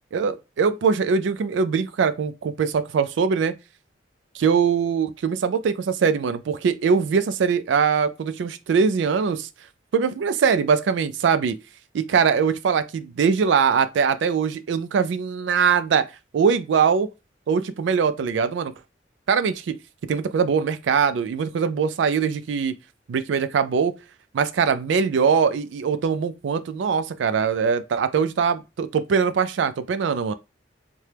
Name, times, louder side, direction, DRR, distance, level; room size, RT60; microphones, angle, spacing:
voice 1, 0.1-3.5 4.3-9.5 9.9-11.6 11.9-16.1 16.3-17.1 17.5-18.7 19.3-19.8 20.1-22.7 23.1-23.9 24.3-30.3, right 6 dB, 80° right, 0.3 m, -22 dB
2.8 x 2.2 x 3.3 m
head